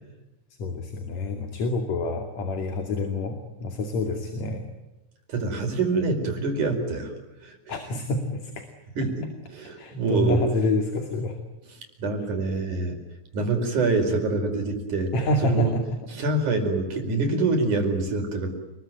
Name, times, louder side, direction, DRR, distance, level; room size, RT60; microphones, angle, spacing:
voice 1, 0.6-4.6 7.7-8.7 9.8-11.4 15.1-16.0, left 2 dB, 65° left, 5 dB, 3.8 m, -27 dB
voice 2, 5.3-7.1 7.4-7.7 9.0-10.4 12.0-13.0 13.3-15.1 15.4-15.7 16.1-18.5, right 3 dB, 85° right, 5 dB, 6.2 m, -25 dB
29.5 x 21.5 x 9.3 m, 1.0 s
omnidirectional pair, 3.4 m